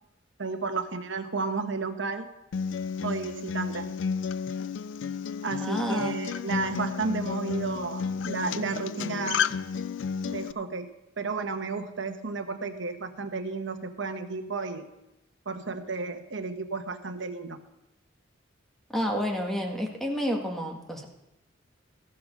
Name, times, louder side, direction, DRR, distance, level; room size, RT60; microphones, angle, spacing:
voice 1, 0.4-2.3 3.0-3.9 5.4-9.6 10.2-10.9 11.2-14.9 15.4-17.6, right 4 dB, 70° right, 7 dB, 1.1 m, -32 dB
Acoustic guitar, 2.5-10.5, left 6 dB, 70° left, 0.4 m, -32 dB
voice 2, 5.6-6.1 18.9-21.0, equal, ahead, 1 dB, 1.7 m, -29 dB
14.0 x 6.9 x 6.4 m, 0.89 s
head